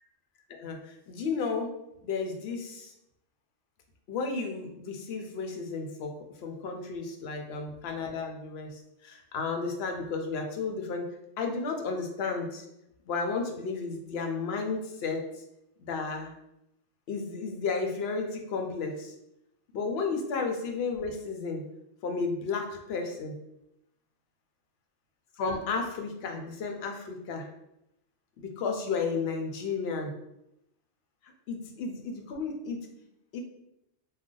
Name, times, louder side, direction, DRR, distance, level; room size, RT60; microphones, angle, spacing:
voice 1, 0.5-1.7 2.0-2.9 4.1-6.1 6.4-11.1 11.4-12.7 13.1-15.3 15.8-16.3 17.1-19.1 19.7-21.6 22.0-23.4 25.4-27.5 28.4-30.1 31.5-32.9 33.3-33.4, left 4 dB, 65° left, 3 dB, 0.8 m, -33 dB
2.4 x 2.2 x 3.7 m, 0.83 s
omnidirectional pair, 1.2 m